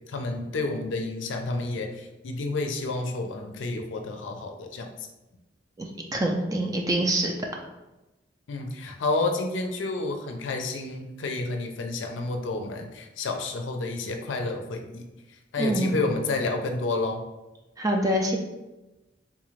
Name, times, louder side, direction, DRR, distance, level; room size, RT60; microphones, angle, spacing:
voice 1, 0.1-5.1 8.5-15.1 15.5-17.2, left 3 dB, 85° left, 4 dB, 0.5 m, -30 dB
voice 2, 6.1-7.3 15.6-15.9 17.8-18.4, right 1 dB, 20° right, 2 dB, 0.4 m, -25 dB
3.7 x 2.5 x 3.1 m, 1.0 s
head